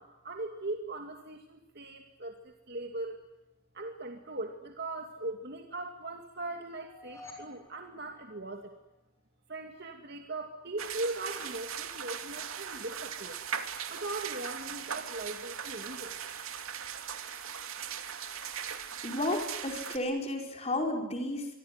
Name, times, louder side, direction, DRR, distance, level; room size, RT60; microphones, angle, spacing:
voice 1, 0.0-3.2 3.7-8.7 9.5-13.4 13.9-16.2, right 2 dB, 50° right, 4 dB, 2.5 m, -39 dB
sound 1, 6.7-9.0, left 2 dB, 15° left, 6.9 m, -52 dB
sound 2, 10.8-20.0, right 8 dB, 75° right, 2.6 m, -39 dB
voice 2, 19.0-21.5, left 1 dB, 30° left, 3 dB, 5.1 m, -32 dB
25.5 x 24.5 x 9.5 m, 0.96 s
head